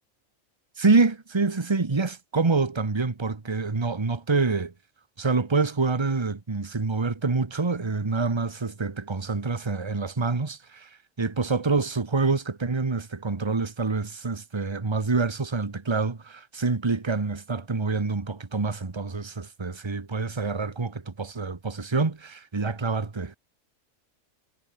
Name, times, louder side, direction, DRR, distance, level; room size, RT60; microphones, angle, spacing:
voice 1, 0.8-4.7 5.2-10.9 11.2-23.4, right 4 dB, 20° right, 1.2 m, -26 dB
omnidirectional pair, 1.4 m